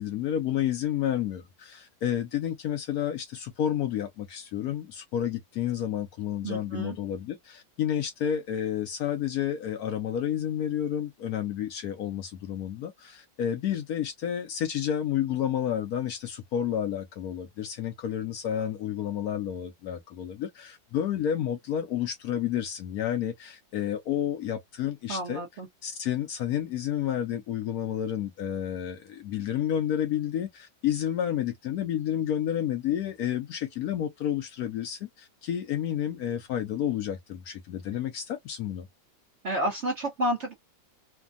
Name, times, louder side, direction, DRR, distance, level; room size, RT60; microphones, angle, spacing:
voice 1, 0.0-25.4 25.8-38.9, left 10 dB, 70° left, 1.0 m, -30 dB
voice 2, 6.4-7.0 25.1-25.7 39.4-40.5, right 1 dB, 60° right, 0.8 m, -30 dB
3.3 x 2.1 x 2.4 m
omnidirectional pair, 1.9 m